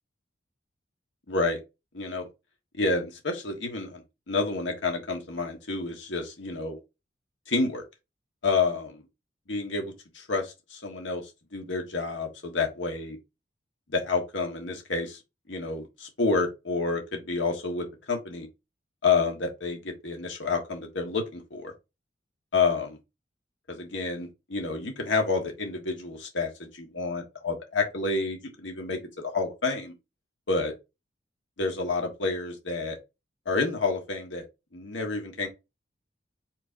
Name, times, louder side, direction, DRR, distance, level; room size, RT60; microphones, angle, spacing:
voice 1, 1.3-1.6 1.9-2.2 2.8-4.0 4.3-6.8 7.5-7.8 8.4-9.0 9.5-9.9 10.3-11.2 11.5-13.2 13.9-15.2 15.5-18.5 19.0-21.7 22.5-23.0 23.7-29.9 30.5-30.7 31.6-33.0 33.5-34.5 34.7-35.5, left 4 dB, 80° left, 1.3 m, -29 dB
4.5 x 4.1 x 2.6 m
head